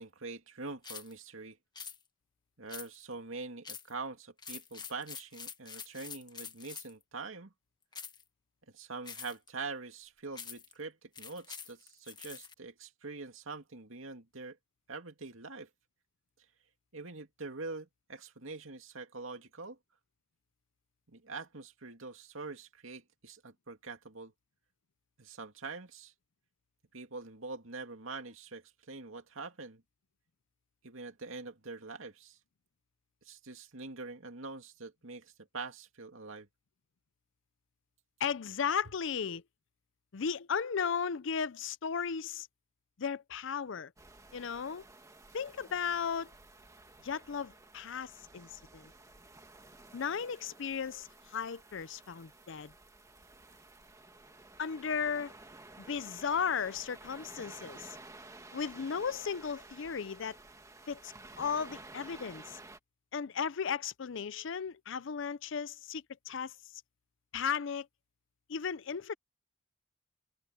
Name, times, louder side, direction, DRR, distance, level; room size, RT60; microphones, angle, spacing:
voice 1, 0.0-1.6 2.6-7.5 8.7-14.6 14.9-15.7 16.9-19.8 21.1-24.3 25.2-26.1 26.9-29.8 30.8-32.4 33.2-36.5, right 3 dB, 80° right, 2.3 m, -44 dB
sound 1, 0.8-1.1 1.8-2.0 2.7-3.1 3.6-3.9 4.4-7.0 7.9-8.2 9.1-9.5 10.4-10.7 11.2-12.5, left 6 dB, 20° left, 1.4 m, -46 dB
voice 2, 38.2-39.4 40.1-42.5 43.0-43.9 44.3-44.8 45.3-46.3 47.0-48.9 49.9-52.7 54.6-55.3 55.9-58.0 58.5-60.4 60.9-62.6 63.1-66.5 67.3-67.9 68.5-69.1, left 6 dB, 65° left, 0.5 m, -35 dB
sound 2, 44.0-62.8, right 2 dB, 15° right, 2.0 m, -53 dB
head